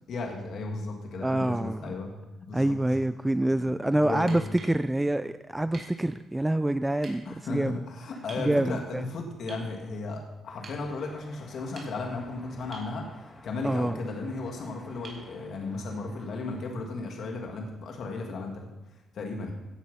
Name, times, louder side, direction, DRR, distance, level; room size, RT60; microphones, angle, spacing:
voice 1, 0.1-2.1 2.5-2.8 3.4-4.4 7.3-13.1 13.4-18.7 19.1-19.5, left 3 dB, 65° left, 2 dB, 2.3 m, -35 dB
voice 2, 1.2-1.9 2.5-7.8 8.4-8.8 13.6-14.0, right 1 dB, 10° right, 12 dB, 0.5 m, -26 dB
sound 1, 4.2-4.8 5.7-5.9 7.0-7.2 8.3-8.5 9.5-9.7 10.6-10.8 11.6-12.2 12.7-12.9 15.0-15.3 17.1-17.2, right 3 dB, 40° right, 4.9 m, -46 dB
sound 2, 10.5-16.6, left 2 dB, 25° left, 2.5 m, -52 dB
17.0 x 7.6 x 5.6 m, 1.1 s
cardioid pair, 90°, 0 cm